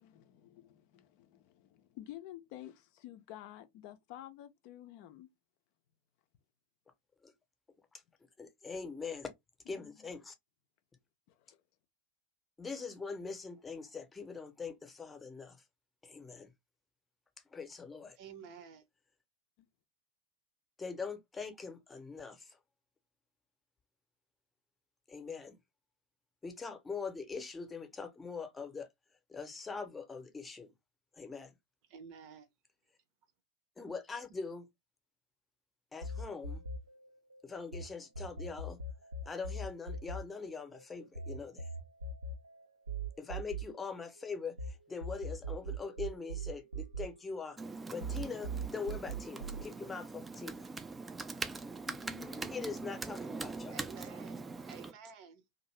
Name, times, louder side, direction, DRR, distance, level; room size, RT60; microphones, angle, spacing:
voice 1, 0.0-5.3 9.7-9.9 11.3-11.6 19.6-19.7 51.9-52.5, left 13 dB, 50° left, 0.5 m, -51 dB
voice 2, 8.4-9.3 9.7-10.3 12.6-15.6 16.0-16.5 17.5-18.2 20.8-22.6 25.1-25.6 26.4-28.9 29.3-30.7 31.1-31.5 33.8-34.7 35.9-36.6 37.4-38.8 39.3-41.7 43.2-47.6 47.9-50.7 52.5-53.8, left 4 dB, 15° left, 0.8 m, -42 dB
voice 3, 18.2-18.8 31.9-32.5 53.7-55.5, right 6 dB, 50° right, 0.7 m, -51 dB
sound 1, 36.0-37.8 38.1-44.7 45.0-47.7 48.0-49.7, right 3 dB, 80° right, 0.4 m, -40 dB
Computer keyboard, 47.6-54.9, right 3 dB, 15° right, 0.4 m, -42 dB
2.6 x 2.5 x 3.1 m
figure-of-eight pair, 85°, 0 cm